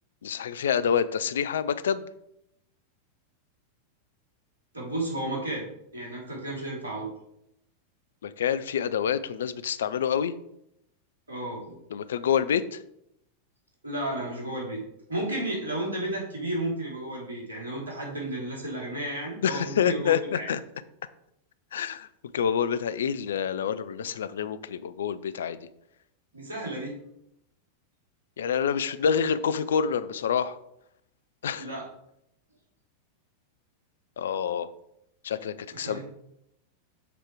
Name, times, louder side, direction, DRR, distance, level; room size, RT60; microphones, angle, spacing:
voice 1, 0.2-2.1 8.2-10.3 11.9-12.8 19.4-20.6 21.7-22.1 22.3-25.6 28.4-30.6 31.4-31.7 34.2-34.7 35.2-36.0, left 7 dB, 65° left, 14 dB, 0.4 m, -27 dB
voice 2, 4.7-5.7 5.9-7.1 11.3-11.8 13.8-14.8 15.1-20.5 26.3-27.0 31.5-31.9 35.7-36.0, right 1 dB, 75° right, -3 dB, 3.0 m, -33 dB
6.9 x 4.4 x 4.7 m, 0.78 s
figure-of-eight pair, 90°, 0 cm